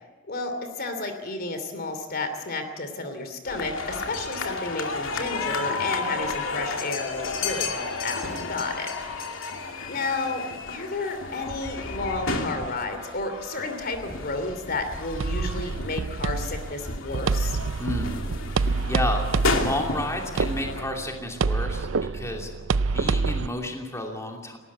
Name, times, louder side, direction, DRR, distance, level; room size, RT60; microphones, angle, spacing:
voice 1, 0.3-8.9 9.9-17.6, left 3 dB, 50° left, 8 dB, 2.9 m, -32 dB
sound 1, 3.5-20.8, left 3 dB, 90° left, 2.5 m, -32 dB
sound 2, 15.2-23.5, right 4 dB, 90° right, 0.6 m, -27 dB
voice 2, 17.8-18.2 18.5-19.2 19.5-22.5 22.9-24.6, left 1 dB, 15° left, 1 dB, 2.8 m, -31 dB
19.5 x 18.0 x 8.5 m, 1.4 s
head